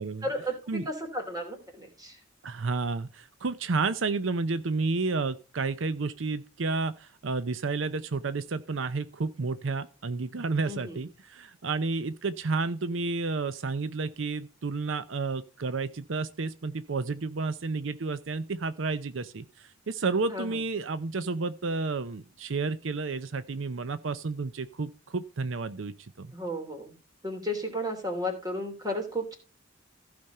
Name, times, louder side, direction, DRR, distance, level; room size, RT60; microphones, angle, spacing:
voice 1, 0.2-2.2 10.7-11.0 20.3-20.6 26.3-26.9 27.2-29.4, equal, 20° right, 3.1 m, -33 dB
voice 2, 2.4-26.3, right 4 dB, 80° right, 0.7 m, -31 dB
15.0 x 5.2 x 5.5 m
head